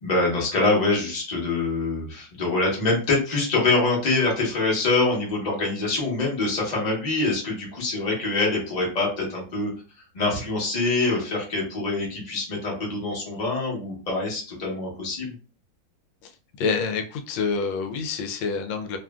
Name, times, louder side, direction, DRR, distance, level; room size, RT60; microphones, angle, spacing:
voice 1, 0.0-9.7 10.1-15.3, left 3 dB, 30° left, -3 dB, 0.8 m, -25 dB
voice 2, 16.6-19.0, left 5 dB, 85° left, 5 dB, 1.3 m, -27 dB
3.2 x 2.4 x 2.3 m, 0.37 s
omnidirectional pair, 2.0 m